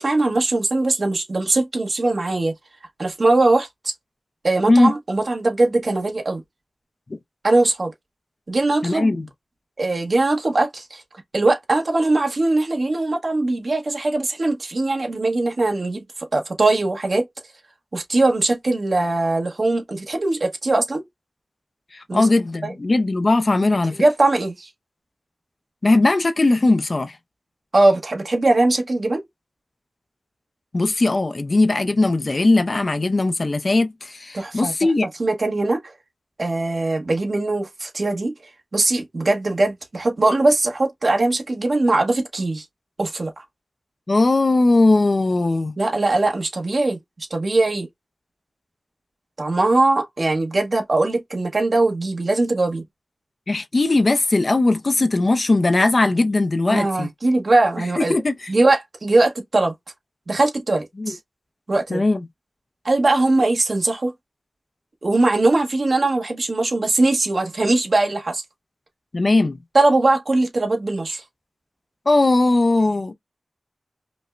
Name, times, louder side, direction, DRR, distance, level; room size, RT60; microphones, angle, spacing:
voice 1, 0.0-2.5 3.0-3.9 4.4-6.4 7.4-7.9 8.5-9.2 9.8-11.0 11.3-16.0 16.3-17.3 17.9-21.0 22.1-22.3 22.6-22.7 24.0-24.7 27.7-29.2 34.3-34.7 35.2-35.9 36.4-38.3 38.7-42.6 43.0-43.4 45.8-47.9 49.4-52.8 56.7-58.2 58.5-59.7 60.3-61.2 61.7-62.0 62.8-64.1 65.0-68.4 69.7-71.2, right 2 dB, 65° right, 1.1 m, -20 dB
voice 2, 8.8-9.3 22.1-24.0 25.8-27.1 30.7-35.1 44.1-45.7 53.5-57.1 58.0-58.3 61.0-61.1 61.9-62.2 69.1-69.6 72.1-73.1, left 2 dB, 55° left, 0.5 m, -19 dB
5.1 x 2.1 x 2.4 m
wide cardioid pair, 65°, 0 cm